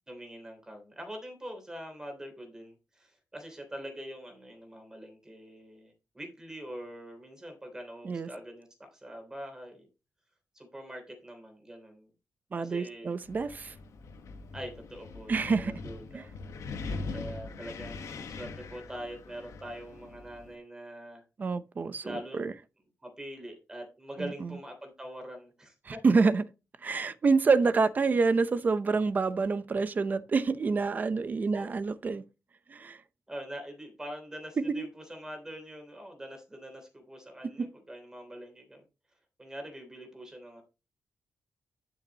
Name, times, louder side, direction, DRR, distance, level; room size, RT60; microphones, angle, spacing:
voice 1, 0.1-9.9 10.5-12.1 12.6-13.2 14.5-16.3 17.1-21.2 22.0-22.4 23.0-26.2 31.5-31.7 33.3-38.8 39.4-40.6, equal, 10° right, 3.1 m, -44 dB
voice 2, 12.5-13.7 15.3-15.7 16.1-16.2 16.8-16.9 21.4-22.5 24.2-24.5 25.8-26.4 26.8-32.2 32.7-33.0 34.6-34.9 37.6-37.7, right 4 dB, 30° right, 0.7 m, -27 dB
Wind, 13.2-20.6, left 3 dB, 70° left, 1.4 m, -42 dB
11.5 x 6.4 x 2.9 m
wide cardioid pair, 180°, 6 cm